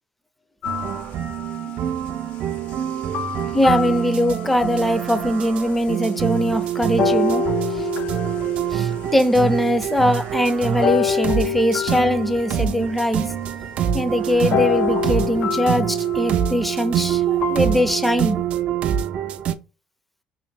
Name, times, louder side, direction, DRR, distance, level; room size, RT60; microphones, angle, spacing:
sound 1, 0.6-1.7 3.1-4.8 5.5-5.6 7.0-9.9 10.8-13.5 14.5-18.0, left 12 dB, 65° left, 0.3 m, -28 dB
sound 2, 0.6-19.5, right 10 dB, 55° right, 0.4 m, -25 dB
voice 1, 3.5-7.5 8.7-13.3 13.9-18.4, equal, 5° left, 0.5 m, -21 dB
2.9 x 2.6 x 3.4 m
cardioid pair, 110°, 2 cm